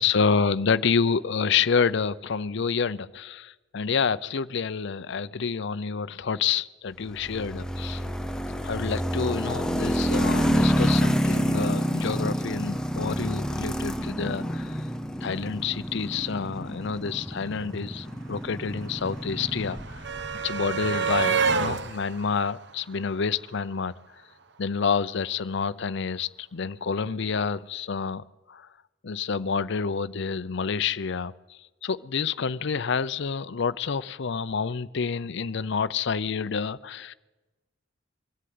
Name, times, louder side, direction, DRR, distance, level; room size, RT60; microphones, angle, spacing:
voice 1, 0.0-8.0 8.6-14.9 15.2-20.1 20.4-24.0 24.6-28.7 29.0-37.1, left 5 dB, 65° left, 14 dB, 0.6 m, -28 dB
sound 1, 7.2-20.3, equal, 5° left, 0.8 m, -28 dB
sound 2, 17.2-17.3 17.5-23.7 24.9-25.0 25.3-25.4, right 5 dB, 65° right, 1.0 m, -30 dB
22.5 x 13.5 x 9.5 m, 1.1 s
head